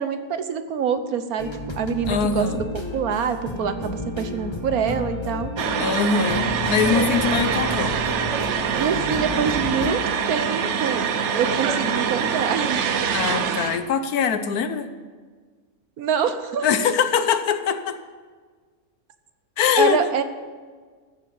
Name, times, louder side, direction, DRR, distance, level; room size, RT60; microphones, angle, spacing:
voice 1, 0.0-1.5 1.7-2.7 2.9-5.5 8.7-10.0 10.3-11.0 11.3-12.8 16.0-16.7 19.8-20.2, right 6 dB, 75° right, 10 dB, 1.4 m, -25 dB
sound 1, 1.4-9.9, left 1 dB, 20° left, 1.3 m, -32 dB
voice 2, 2.1-2.6 5.8-8.0 13.1-14.9 16.6-18.0 19.6-20.0, left 6 dB, 80° left, 10 dB, 1.4 m, -22 dB
sound 2, 5.6-13.8, right 7 dB, 60° right, 1.0 m, -24 dB
14.0 x 7.3 x 8.1 m, 1.5 s
omnidirectional pair, 1.6 m